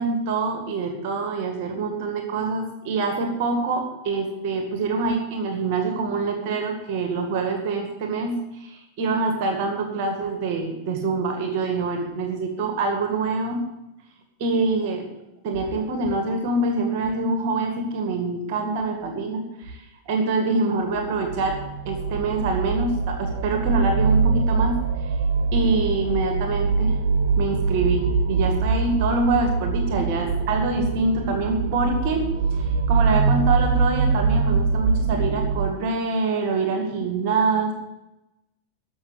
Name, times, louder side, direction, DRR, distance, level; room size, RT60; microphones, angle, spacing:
voice 1, 0.0-13.6 14.4-15.1 15.4-21.6 21.9-24.8 25.5-27.0 27.4-32.3 32.6-37.7, right 3 dB, 45° right, 4 dB, 2.2 m, -25 dB
sound 1, 20.9-35.7, right 4 dB, 60° right, 0.6 m, -23 dB
14.5 x 6.3 x 8.1 m, 0.94 s
figure-of-eight pair, 90°, 0 cm